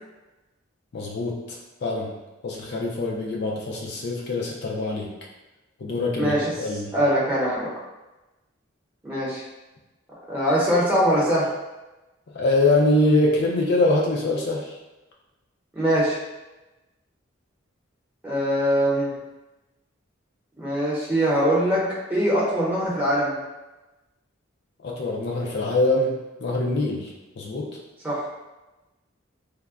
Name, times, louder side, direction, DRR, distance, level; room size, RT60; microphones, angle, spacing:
voice 1, 0.9-2.1 2.4-5.1 5.8-6.9 12.3-14.7 24.8-27.7, left 2 dB, 55° left, -2 dB, 0.4 m, -24 dB
voice 2, 6.1-6.5 6.9-7.7 9.0-9.4 10.3-11.5 15.7-16.2 18.2-19.1 20.6-21.8 22.1-23.4 28.0-28.2, equal, 10° right, -8 dB, 0.7 m, -22 dB
3.3 x 2.1 x 2.4 m, 1.1 s
head